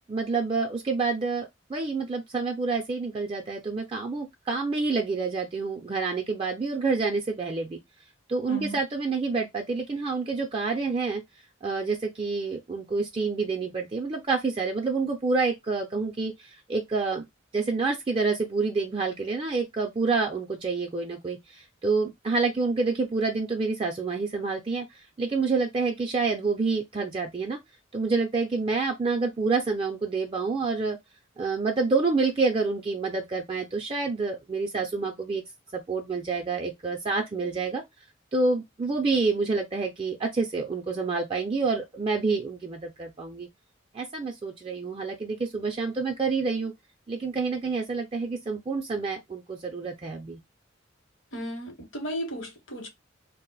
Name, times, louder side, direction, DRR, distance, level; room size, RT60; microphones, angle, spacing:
voice 1, 0.1-7.8 8.3-11.2 11.6-17.3 17.5-24.9 25.2-27.6 27.9-31.0 31.4-35.4 35.7-37.8 38.3-43.5 43.9-46.7 47.1-50.4, right 4 dB, 25° right, 0.4 m, -28 dB
voice 2, 8.5-8.8 51.3-52.9, equal, 70° left, 0.9 m, -35 dB
2.4 x 2.0 x 3.8 m
head